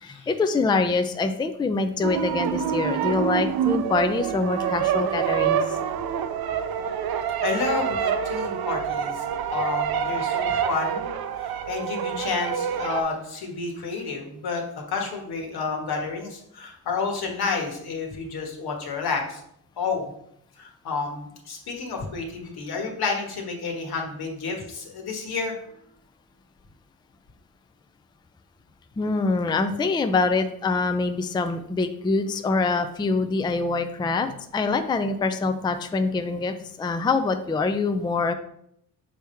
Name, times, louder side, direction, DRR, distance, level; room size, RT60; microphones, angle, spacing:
voice 1, 0.0-5.6 29.0-38.3, left 3 dB, 10° left, 7 dB, 0.4 m, -25 dB
sound 1, 2.0-13.0, right 8 dB, 75° right, 0.6 m, -26 dB
voice 2, 7.4-9.2 9.5-11.1 11.4-19.4 19.8-20.0 20.6-25.6, left 4 dB, 80° left, 1 dB, 1.5 m, -30 dB
6.1 x 3.5 x 4.4 m, 0.72 s
cardioid pair, 90°, 37 cm